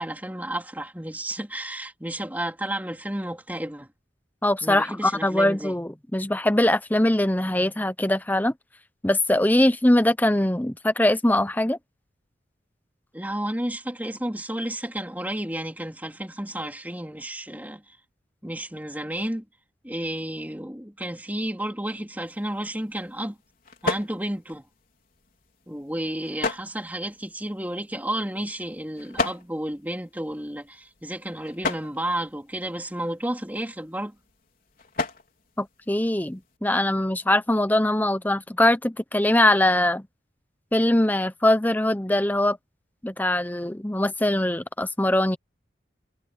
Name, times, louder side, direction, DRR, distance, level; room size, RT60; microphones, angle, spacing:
voice 1, 0.0-3.9 4.6-5.8 13.1-17.8 18.4-19.4 19.8-23.4 23.8-24.6 25.7-34.1, right 1 dB, 10° right, 3.5 m, -32 dB
voice 2, 4.4-8.5 9.0-11.8 35.6-40.1 40.7-42.6 43.0-45.4, left 1 dB, 10° left, 0.8 m, -22 dB
sound 1, 22.2-36.6, left 3 dB, 50° left, 4.7 m, -37 dB
head